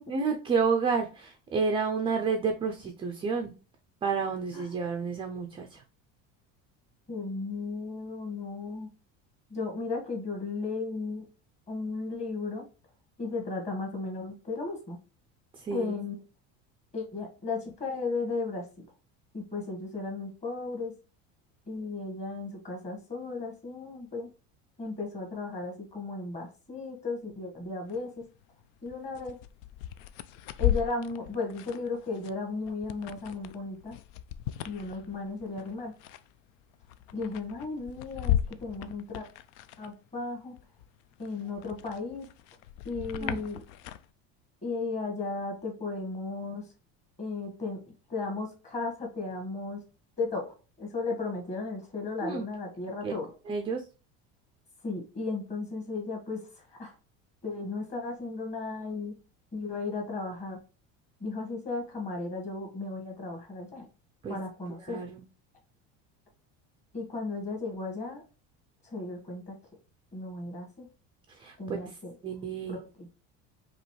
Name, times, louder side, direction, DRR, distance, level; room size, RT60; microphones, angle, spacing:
voice 1, 0.1-3.5 4.0-5.8 15.5-16.1 43.2-43.4 52.2-52.4 53.0-53.1 53.5-53.8 64.2-64.4 64.9-65.2 71.3-72.0 72.2-72.8, right 5 dB, 15° right, 4 dB, 0.3 m, -30 dB
voice 2, 7.1-8.9 9.5-11.2 11.7-12.6 13.2-15.0 15.7-16.2 16.9-18.6 19.3-20.9 21.7-24.3 24.8-28.2 28.8-29.3 30.6-34.0 34.6-35.9 37.1-39.3 39.8-40.6 41.2-42.3 42.8-43.6 44.6-46.7 47.2-49.8 50.2-53.3 54.8-57.0 57.4-59.1 59.5-60.6 61.2-63.8 64.3-65.0 66.9-68.2 68.8-69.5 70.1-70.9 71.6-72.1 72.7-73.1, left 3 dB, 20° left, 1 dB, 1.4 m, -35 dB
sound 1, 27.9-28.0 28.4-40.2 40.6-44.1, left 12 dB, 80° left, 0.5 m, -36 dB
5.1 x 3.0 x 3.1 m, 0.33 s
cardioid pair, 165°, 33 cm